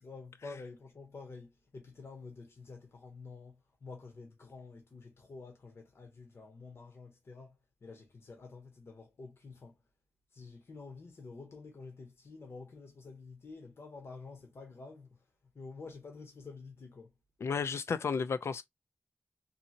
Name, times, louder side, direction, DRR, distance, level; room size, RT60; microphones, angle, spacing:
voice 1, 0.0-9.8 10.3-15.2 15.5-17.1, left 4 dB, 70° left, 0.8 m, -49 dB
voice 2, 17.4-18.6, left 5 dB, 90° left, 0.3 m, -32 dB
2.7 x 2.6 x 2.7 m
wide cardioid pair, 110°, 4 cm